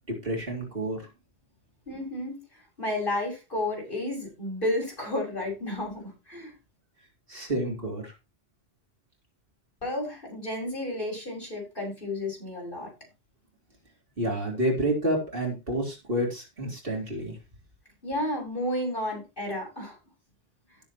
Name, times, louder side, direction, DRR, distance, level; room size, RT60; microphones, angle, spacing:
voice 1, 0.2-1.1 7.3-8.1 14.2-17.4, right 1 dB, 60° right, 0 dB, 3.8 m, -29 dB
voice 2, 1.9-2.4 2.8-6.5 9.8-12.9 18.0-20.0, left 1 dB, 55° left, -2 dB, 6.8 m, -32 dB
17.0 x 7.4 x 3.0 m, 0.26 s
omnidirectional pair, 1.1 m